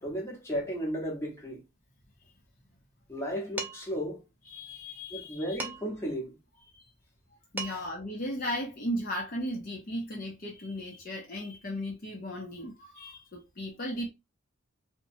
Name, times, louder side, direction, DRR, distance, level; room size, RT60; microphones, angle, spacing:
voice 1, 0.0-1.6 3.1-4.2 5.1-6.4 7.7-7.8, equal, 10° left, 1.0 m, -34 dB
Dishes pots and pans, 3.6-4.0 5.6-6.1 7.2-7.3 7.6-8.0, right 3 dB, 10° right, 0.3 m, -38 dB
voice 2, 4.4-5.6 6.6-6.9 7.5-14.1, equal, 45° left, 0.7 m, -36 dB
3.0 x 2.2 x 2.6 m
head